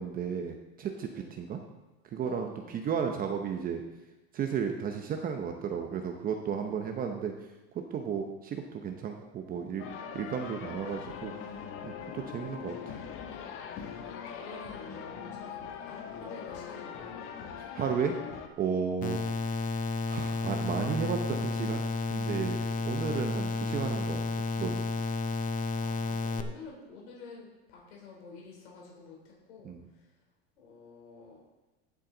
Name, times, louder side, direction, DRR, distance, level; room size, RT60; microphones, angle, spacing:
voice 1, 0.0-1.6 2.1-3.8 4.3-7.3 7.9-9.8 10.1-11.3 11.8-12.8 17.7-18.1 18.6-19.2 20.1-21.8 22.1-24.2 24.6-24.8 29.6-29.9, right 7 dB, 30° right, 4 dB, 0.9 m, -33 dB
voice 2, 2.2-2.8 6.6-6.8 13.6-17.1 25.8-29.7 30.6-31.4, left 4 dB, 85° left, -2 dB, 3.8 m, -50 dB
sound 1, 9.8-18.5, left 7 dB, 45° left, 1.2 m, -41 dB
sound 2, 19.0-26.4, left 3 dB, 25° left, 0.7 m, -32 dB
15.0 x 7.5 x 3.9 m, 1.1 s
supercardioid pair, 140°, 32 cm